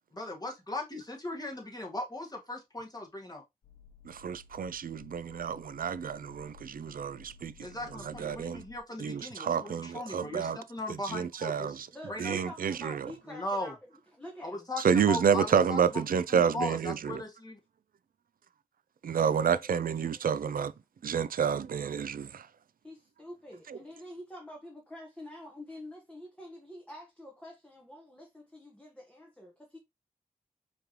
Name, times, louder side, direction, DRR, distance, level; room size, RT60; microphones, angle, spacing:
voice 1, 0.1-3.4 7.6-11.8 12.1-12.4 13.2-13.7 14.4-16.0 16.3-17.6, left 1 dB, 25° left, 1.8 m, -38 dB
sound 1, 3.6-8.8, left 5 dB, 85° left, 0.7 m, -55 dB
voice 2, 4.1-7.7 8.0-8.6 9.0-10.6 11.1-11.9 12.2-13.1 14.8-17.2 19.0-20.7 21.0-22.5 23.7-23.8, right 7 dB, 65° right, 0.4 m, -29 dB
voice 3, 11.9-13.8 14.1-14.7 19.5-19.7 20.2-20.4 21.4-21.5 22.8-29.8, left 1 dB, 5° left, 1.1 m, -47 dB
5.2 x 3.2 x 2.9 m
cardioid pair, 60°, 16 cm